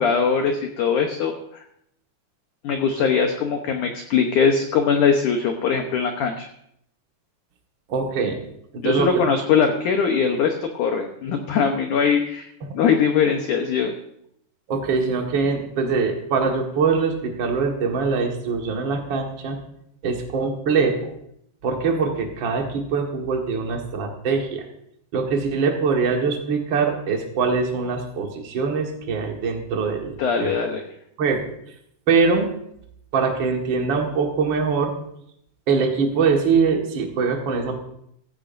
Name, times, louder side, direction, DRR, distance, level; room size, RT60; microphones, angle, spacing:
voice 1, 0.0-1.6 2.6-6.5 8.8-13.9 30.2-30.8, left 6 dB, 80° left, 4 dB, 1.8 m, -21 dB
voice 2, 7.9-8.4 8.7-9.2 12.6-12.7 14.7-19.6 20.0-21.1 21.6-24.6 25.1-30.5 31.2-31.4 32.1-32.5 33.1-35.0 35.7-37.8, right 5 dB, 65° right, 2 dB, 1.1 m, -23 dB
16.0 x 15.5 x 2.6 m, 0.72 s
omnidirectional pair, 5.0 m